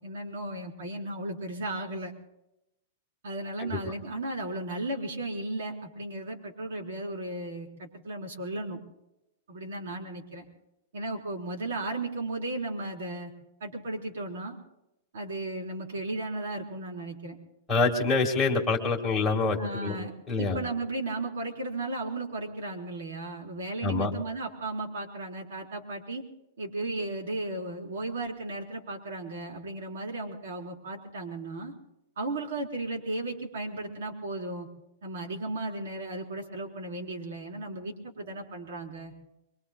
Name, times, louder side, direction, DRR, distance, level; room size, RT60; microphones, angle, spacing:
voice 1, 0.0-2.1 3.2-8.8 9.5-10.5 10.9-13.3 13.6-14.6 15.1-17.4 19.6-20.1 20.4-26.2 26.6-31.7 32.2-34.7 35.0-39.1, right 2 dB, 75° right, 1 dB, 4.0 m, -35 dB
voice 2, 17.7-20.0 20.3-20.6 23.8-24.1, left 3 dB, 5° left, -3 dB, 1.7 m, -26 dB
24.5 x 23.5 x 2.3 m, 0.86 s
supercardioid pair, 175°, 0 cm